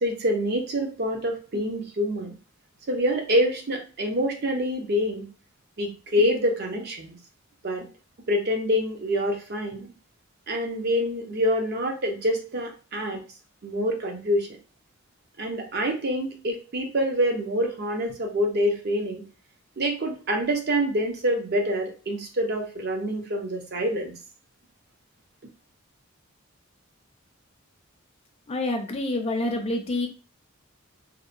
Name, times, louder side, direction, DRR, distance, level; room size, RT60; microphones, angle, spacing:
voice 1, 0.0-2.3 2.9-5.3 5.8-7.2 7.6-7.8 8.3-9.9 10.5-13.2 13.6-14.6 15.4-19.2 19.8-24.2, equal, 50° right, 2 dB, 0.6 m, -26 dB
voice 2, 28.5-30.1, left 2 dB, 30° left, 4 dB, 0.4 m, -27 dB
2.8 x 2.1 x 2.5 m, 0.35 s
head